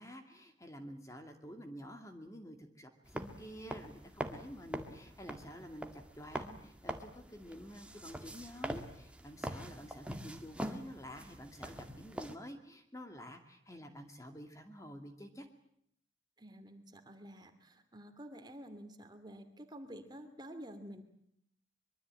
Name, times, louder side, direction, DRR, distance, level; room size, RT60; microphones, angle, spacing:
voice 1, 0.0-15.5, equal, 15° left, 6 dB, 2.4 m, -49 dB
sound 1, 3.1-12.4, right 1 dB, 5° right, 1.8 m, -44 dB
voice 2, 16.4-21.0, equal, 20° right, 7 dB, 2.5 m, -50 dB
24.5 x 23.0 x 8.9 m, 0.71 s
head